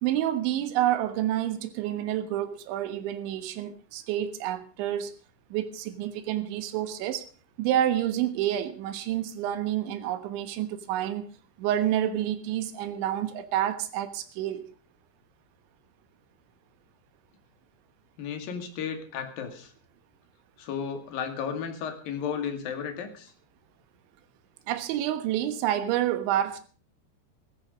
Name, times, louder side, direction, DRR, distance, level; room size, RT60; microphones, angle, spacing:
voice 1, 0.0-5.1 5.5-7.3 7.6-11.3 11.6-14.7 24.7-26.6, right 12 dB, 85° right, 3.6 m, -28 dB
voice 2, 18.2-19.7 20.6-23.3, left 7 dB, 55° left, 3.6 m, -34 dB
15.5 x 14.0 x 5.1 m
omnidirectional pair, 5.2 m